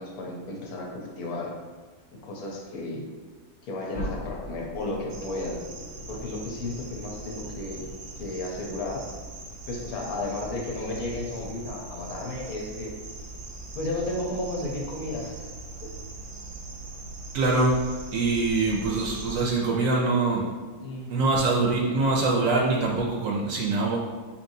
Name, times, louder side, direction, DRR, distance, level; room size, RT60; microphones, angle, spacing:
voice 1, 0.0-1.5 2.1-3.0 3.6-5.6 6.1-7.9 8.2-9.0 9.7-12.9 13.7-15.4 15.8-15.9 20.8-21.3, left 2 dB, 85° left, -1 dB, 1.3 m, -33 dB
sound 1, 3.9-8.7, left 1 dB, 55° left, 0.9 m, -41 dB
sound 2, 5.1-19.4, right 3 dB, 90° right, 1.2 m, -41 dB
voice 2, 17.3-20.5 21.1-24.0, right 3 dB, 70° right, -1 dB, 0.9 m, -24 dB
4.5 x 3.0 x 2.7 m, 1.4 s
omnidirectional pair, 1.6 m